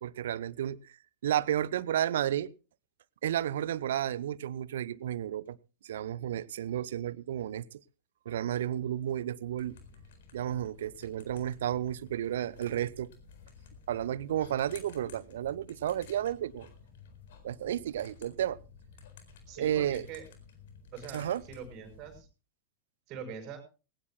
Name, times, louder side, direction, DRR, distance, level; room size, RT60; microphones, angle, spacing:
voice 1, 0.0-1.0 1.2-2.5 3.2-5.6 5.8-7.8 8.2-9.8 10.3-13.1 13.9-16.7 17.4-18.6 19.6-20.1 21.1-21.4, right 11 dB, 60° right, 20 dB, 0.7 m, -32 dB
sound 1, 9.6-22.2, left 5 dB, 60° left, 4.2 m, -53 dB
voice 2, 19.5-20.2 20.9-22.3 23.1-23.6, right 6 dB, 35° right, 4 dB, 5.5 m, -43 dB
20.0 x 18.5 x 2.2 m, 0.33 s
figure-of-eight pair, 90°, 0 cm